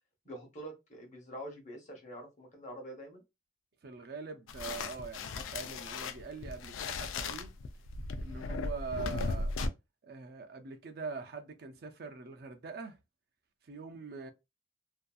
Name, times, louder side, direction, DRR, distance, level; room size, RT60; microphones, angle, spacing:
voice 1, 0.2-3.2, right 1 dB, 40° left, 0.9 m, -45 dB
voice 2, 3.8-7.5 8.2-9.6 10.0-13.0 13.6-14.3, right 4 dB, 50° right, 0.4 m, -43 dB
sound 1, 4.5-9.7, left 3 dB, 90° left, 0.3 m, -37 dB
2.6 x 2.4 x 2.3 m
head